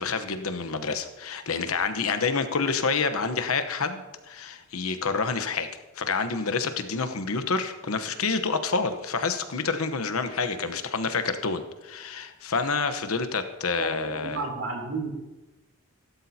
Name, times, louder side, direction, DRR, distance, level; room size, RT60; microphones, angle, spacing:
voice 1, 0.0-5.7 6.0-14.4, left 4 dB, 80° left, 9 dB, 1.0 m, -28 dB
voice 2, 13.7-15.1, right 3 dB, 80° right, 0 dB, 3.3 m, -32 dB
15.5 x 12.5 x 2.8 m, 1.1 s
head